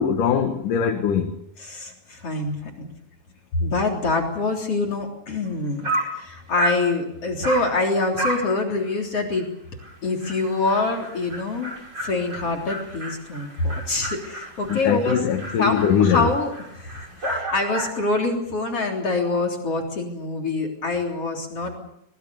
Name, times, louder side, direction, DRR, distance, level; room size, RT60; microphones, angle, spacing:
voice 1, 0.0-1.3 14.7-16.3, left 8 dB, 75° left, 3.1 m, -21 dB
voice 2, 1.6-2.9 3.6-5.9 6.1-9.5 10.0-15.2 15.6-21.7, left 3 dB, 45° left, 4.3 m, -25 dB
Dog, 5.5-5.6 5.8-6.2 6.6-6.9 7.4-7.7 8.2-8.5 8.8-8.9 9.4-9.5 9.8-9.9 10.2-18.0, right 1 dB, 30° right, 7.1 m, -31 dB
24.5 x 21.0 x 6.9 m
omnidirectional pair, 3.8 m